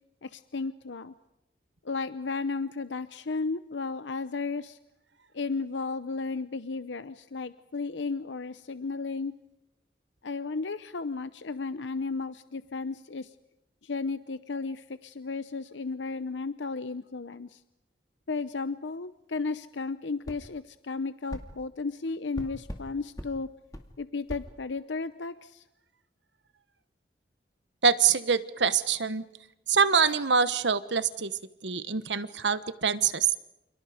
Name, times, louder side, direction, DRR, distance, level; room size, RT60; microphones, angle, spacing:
voice 1, 0.2-1.1 1.8-4.8 5.3-9.3 10.2-13.3 13.8-17.6 18.3-23.5 24.0-25.6, left 4 dB, 90° left, 13 dB, 0.8 m, -34 dB
sound 1, 20.2-20.4 21.3-21.5 22.3-22.9 23.2-23.3 23.7-23.9 24.3-24.5, equal, 20° left, 2.3 m, -38 dB
voice 2, 27.8-29.2 29.7-31.3 31.6-33.3, right 6 dB, 80° right, 13 dB, 1.2 m, -25 dB
29.5 x 29.0 x 5.1 m, 0.91 s
head